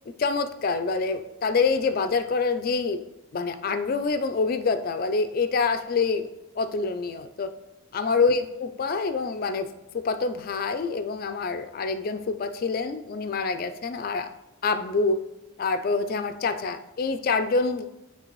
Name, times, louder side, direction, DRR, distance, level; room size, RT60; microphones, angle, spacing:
voice 1, 0.2-3.0 3.3-6.3 6.6-7.5 7.9-9.7 9.9-14.3 14.6-15.2 15.6-17.9, left 4 dB, 45° left, 10 dB, 0.3 m, -26 dB
9.7 x 3.3 x 3.0 m, 0.96 s
head